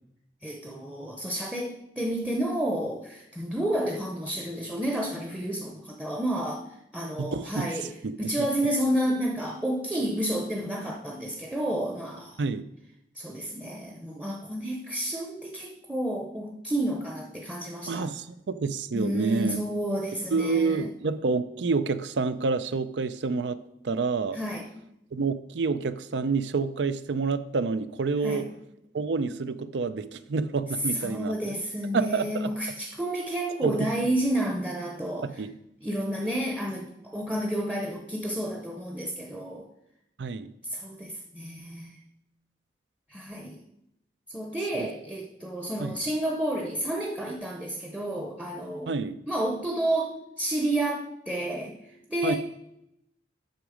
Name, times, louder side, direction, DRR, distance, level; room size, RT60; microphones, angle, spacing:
voice 1, 0.4-6.6 6.9-7.9 8.2-12.4 13.1-18.1 18.9-20.9 24.3-24.7 28.2-28.5 30.9-35.4 35.8-39.7 40.6-42.0 43.1-43.6 44.3-48.9 49.3-51.8 52.1-52.3, right 1 dB, 5° right, 1 dB, 0.7 m, -30 dB
voice 2, 7.2-7.7 8.0-8.5 12.4-12.6 17.9-19.6 20.3-23.6 23.8-24.4 25.1-28.5 28.9-31.6 31.9-32.5 33.6-33.9 35.2-35.5 40.2-40.5 44.8-44.9 45.8-46.0 48.9-49.2 52.2-52.3, right 4 dB, 80° right, 13 dB, 0.5 m, -28 dB
7.8 x 6.3 x 5.0 m, 0.81 s
head